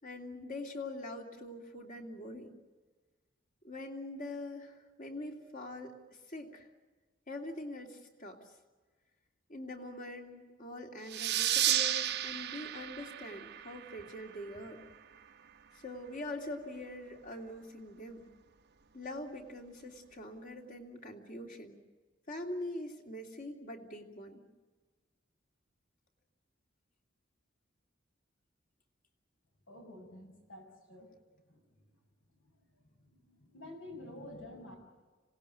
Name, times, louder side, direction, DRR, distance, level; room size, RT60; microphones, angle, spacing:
voice 1, 0.0-2.5 3.6-6.0 6.3-6.7 7.3-8.4 9.5-14.8 15.8-18.2 18.9-21.8 22.3-24.4, left 1 dB, 45° left, 3 dB, 3.1 m, -43 dB
sound 1, 11.1-14.3, right 12 dB, 60° right, 0.9 m, -32 dB
voice 2, 29.7-31.1 31.5-31.6 33.0-34.8, left 1 dB, 80° left, 3 dB, 7.2 m, -49 dB
26.0 x 18.5 x 9.3 m, 1.3 s
head